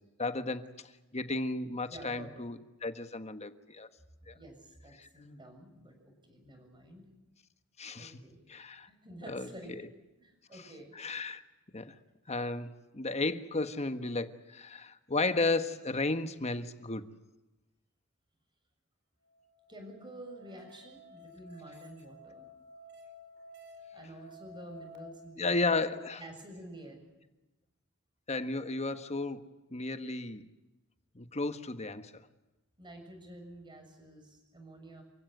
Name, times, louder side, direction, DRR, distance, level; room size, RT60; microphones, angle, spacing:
voice 1, 0.2-0.7 1.1-3.9 4.3-4.4 5.0-5.1 7.8-8.1 8.5-8.9 9.3-9.5 10.9-11.4 11.7-11.9 12.3-17.1 25.4-26.2 28.3-29.4 29.7-30.5 31.1-32.1, left 3 dB, 30° left, 9 dB, 1.3 m, -33 dB
voice 2, 1.9-2.5 4.3-7.1 8.0-8.4 8.9-9.7 10.2-10.9 19.7-22.5 23.9-25.8 26.2-27.0 32.8-35.0, right 1 dB, 20° right, 4 dB, 6.9 m, -49 dB
Musical instrument, 19.3-25.0, equal, 55° right, 5.0 m, -53 dB
29.0 x 16.0 x 9.4 m, 1.1 s
head